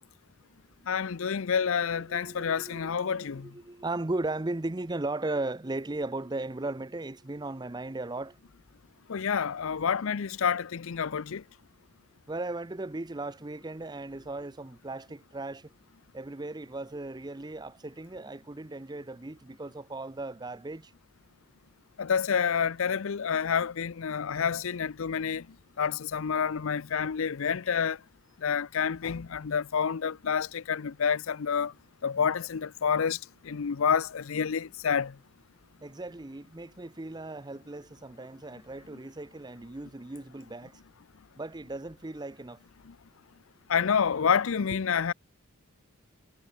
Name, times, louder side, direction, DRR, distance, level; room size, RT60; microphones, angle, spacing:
voice 1, 0.9-3.5 9.1-11.4 22.0-25.4 25.8-28.0 28.4-31.7 32.0-33.2 33.5-35.1 43.7-45.1, left 6 dB, 65° left, 0.5 m, -28 dB
voice 2, 1.9-8.3 12.3-15.7 16.1-20.9 35.8-40.7 41.4-42.6, right 2 dB, 20° right, 0.6 m, -37 dB
head